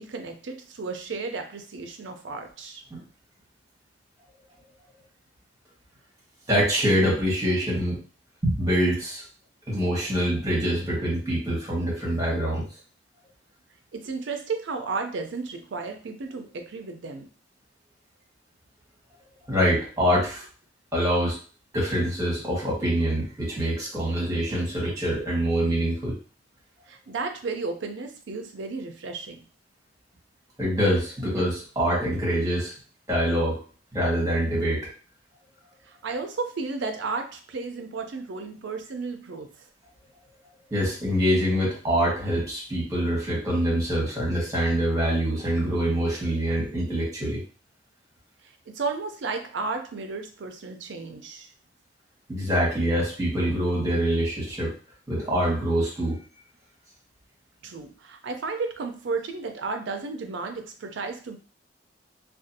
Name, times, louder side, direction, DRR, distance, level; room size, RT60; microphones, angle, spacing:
voice 1, 0.0-2.8 13.9-17.3 26.9-29.4 35.9-39.5 48.7-51.5 57.6-61.4, right 4 dB, 70° right, 5 dB, 0.4 m, -33 dB
voice 2, 6.5-8.0 8.4-9.2 9.7-12.7 19.5-20.4 20.9-21.4 21.7-26.2 30.6-32.7 33.1-33.6 33.9-34.8 40.7-47.4 52.3-54.7 55.1-56.2, equal, 15° right, -5 dB, 1.1 m, -25 dB
2.5 x 2.3 x 2.6 m, 0.39 s
head